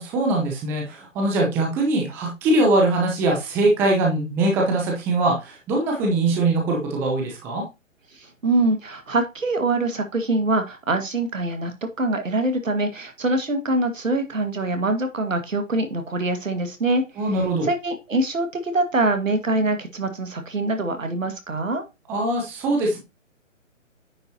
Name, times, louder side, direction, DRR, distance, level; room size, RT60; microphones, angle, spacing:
voice 1, 0.0-7.6 17.2-17.7 22.1-23.0, right 2 dB, 5° right, 0 dB, 0.6 m, -22 dB
voice 2, 8.1-17.2 17.6-21.8, right 2 dB, 75° right, 6 dB, 2.0 m, -24 dB
9.5 x 5.4 x 2.9 m, 0.25 s
figure-of-eight pair, 140°, 39 cm